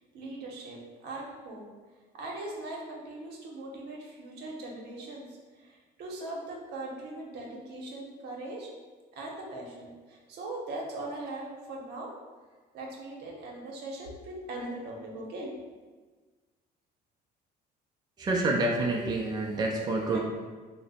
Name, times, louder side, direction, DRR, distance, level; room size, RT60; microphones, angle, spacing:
voice 1, 0.1-1.7 2.2-8.7 9.2-12.1 12.7-15.5 19.6-19.7 20.1-20.2, right 2 dB, 75° right, -1 dB, 0.8 m, -40 dB
voice 2, 18.2-20.2, right 2 dB, 25° right, 0 dB, 0.4 m, -28 dB
2.9 x 2.0 x 4.1 m, 1.4 s
cardioid pair, 110°, 17 cm